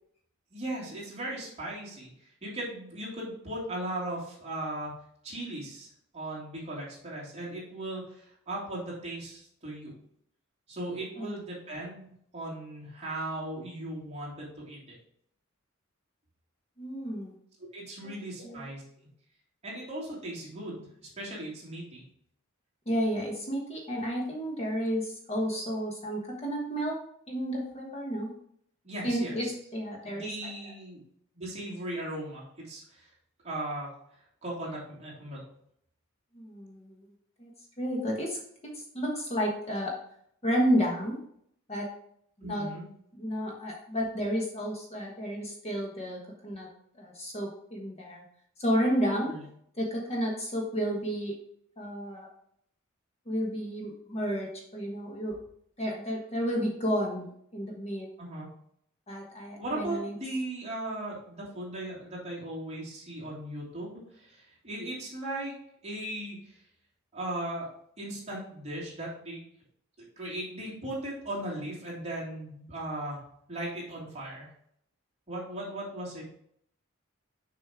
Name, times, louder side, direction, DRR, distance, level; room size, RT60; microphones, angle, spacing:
voice 1, 0.5-4.9 5.2-5.9 6.1-9.9 10.7-15.0 17.7-18.8 19.6-22.0 28.8-29.5 30.0-31.0 31.3-33.1 33.4-33.9 34.4-35.4 42.4-42.9 49.2-49.4 58.2-58.5 59.6-65.5 65.8-66.6 67.1-67.7 68.0-69.4 70.2-73.2 73.5-74.5 75.3-76.3, right 1 dB, 30° right, -6 dB, 2.9 m, -37 dB
voice 2, 16.8-17.3 18.4-18.7 22.9-27.0 27.3-28.3 29.0-30.5 36.3-37.1 37.4-37.5 37.8-38.4 38.6-39.9 40.4-41.2 41.7-41.9 42.4-42.7 43.1-46.7 47.0-48.3 48.6-49.3 49.7-51.4 51.8-52.3 53.3-55.4 55.8-57.3 57.5-58.1 59.1-60.2, equal, 30° left, -1 dB, 1.2 m, -31 dB
6.6 x 5.2 x 3.6 m, 0.68 s
head